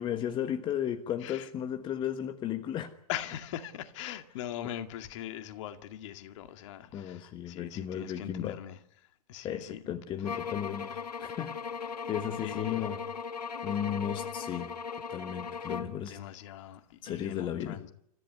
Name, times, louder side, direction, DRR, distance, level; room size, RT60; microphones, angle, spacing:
voice 1, 0.0-2.9 4.6-4.7 6.9-8.6 9.4-13.0 13.6-14.7 15.1-16.2 17.0-17.8, left 10 dB, 25° left, 1.3 m, -35 dB
voice 2, 3.1-8.8 9.3-9.9 12.4-12.8 16.1-17.9, left 11 dB, 45° left, 2.2 m, -41 dB
sound 1, 10.2-16.0, left 6 dB, 75° left, 1.4 m, -38 dB
28.5 x 14.5 x 9.5 m
figure-of-eight pair, 110°, 21 cm